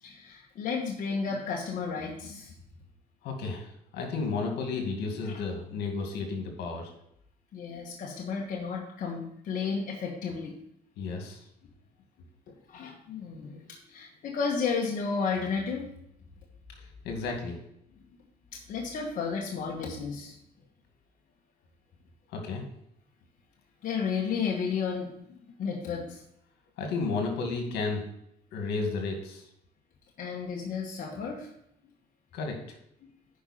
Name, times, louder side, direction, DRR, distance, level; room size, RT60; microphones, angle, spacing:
voice 1, 0.0-2.5 5.2-5.3 7.5-10.6 12.7-15.9 18.5-20.4 23.8-25.1 25.6-26.2 30.2-31.5 33.0-33.1, left 5 dB, 55° left, -1 dB, 1.4 m, -32 dB
voice 2, 3.2-6.9 11.0-11.4 16.8-17.6 22.3-22.7 26.8-28.0 28.5-29.5 32.3-32.6, left 4 dB, 75° left, 3 dB, 2.1 m, -33 dB
10.0 x 5.2 x 4.3 m, 0.75 s
cardioid pair, 110°, 17 cm